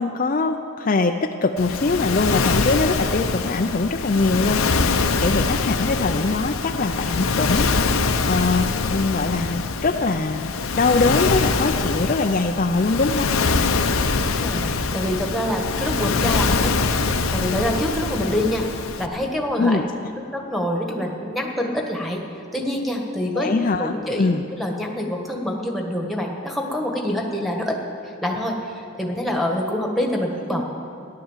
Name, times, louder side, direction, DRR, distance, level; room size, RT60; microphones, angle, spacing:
voice 1, 0.0-8.0 8.3-13.3 19.6-19.9 23.3-24.4, left 3 dB, 40° left, 5 dB, 0.5 m, -22 dB
Waves surf, 1.6-19.1, left 4 dB, 80° left, 0.8 m, -23 dB
voice 2, 14.1-18.6 18.9-19.8 20.3-22.2 22.5-24.3 24.6-27.8 28.0-30.7, left 1 dB, ahead, 0 dB, 1.4 m, -26 dB
15.5 x 11.0 x 7.3 m, 2.5 s
head